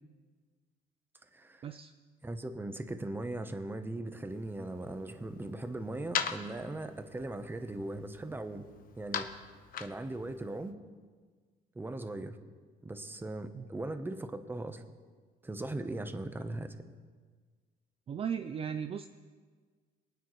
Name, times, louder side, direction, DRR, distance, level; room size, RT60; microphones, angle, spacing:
voice 1, 1.3-1.7 2.2-8.6 9.0-9.3 9.8-10.7 11.7-12.4 12.8-14.8 15.4-16.8, right 2 dB, 10° right, 8 dB, 0.9 m, -39 dB
sound 1, 4.3-10.7, left 8 dB, 55° left, 0.9 m, -42 dB
voice 2, 18.1-19.1, right 7 dB, 35° right, 10 dB, 0.4 m, -36 dB
24.5 x 9.2 x 3.2 m, 1.5 s
cardioid pair, 110°, 17 cm